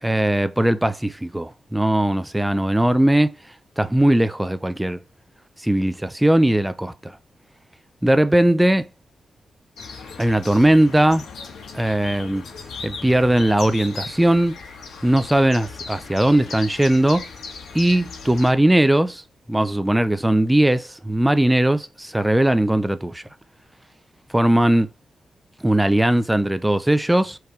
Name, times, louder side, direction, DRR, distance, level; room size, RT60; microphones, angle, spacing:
voice 1, 0.0-3.4 3.8-5.0 5.6-7.2 8.0-8.9 10.2-11.3 11.7-12.4 12.8-14.6 15.0-17.3 17.7-23.2 24.3-24.9 25.6-27.4, right 1 dB, 10° right, 0.6 m, -19 dB
sound 1, 9.8-18.5, left 4 dB, 80° left, 2.3 m, -37 dB
5.1 x 4.7 x 4.5 m
wide cardioid pair, 110°, 0 cm